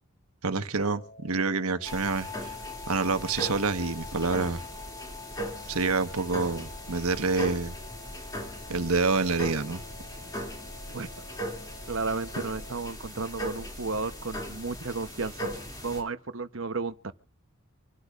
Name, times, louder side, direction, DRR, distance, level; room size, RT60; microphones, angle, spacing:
voice 1, 0.4-2.6 2.9-4.6 5.7-7.7 8.7-9.8, right 3 dB, 85° right, 1.3 m, -27 dB
sound 1, 0.7-12.7, left 2 dB, 65° left, 3.9 m, -51 dB
sound 2, 1.8-16.0, left 1 dB, 15° left, 2.7 m, -38 dB
voice 2, 11.9-15.5 15.8-17.1, right 4 dB, 60° right, 0.9 m, -33 dB
27.0 x 12.0 x 2.5 m
head